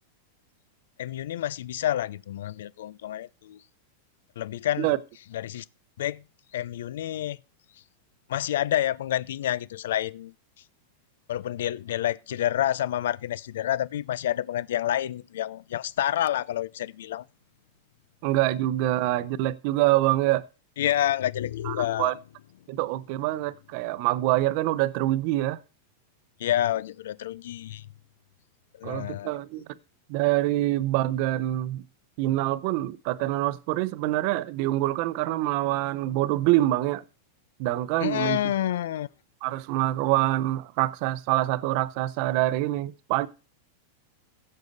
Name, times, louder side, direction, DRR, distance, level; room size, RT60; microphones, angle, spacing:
voice 1, 1.0-3.6 4.4-4.9 5.3-5.6 6.0-6.2 6.5-7.4 8.3-10.3 11.3-17.2 20.8-22.1 26.4-27.8 28.8-29.3 38.0-39.1, left 12 dB, 75° left, 0.5 m, -28 dB
voice 2, 18.2-20.4 21.6-22.1 22.7-25.6 28.8-29.7 30.1-31.8 32.2-37.0 37.6-38.4 39.4-43.3, right 16 dB, 45° right, 0.7 m, -25 dB
16.0 x 6.6 x 4.0 m
supercardioid pair, 160°, 0 cm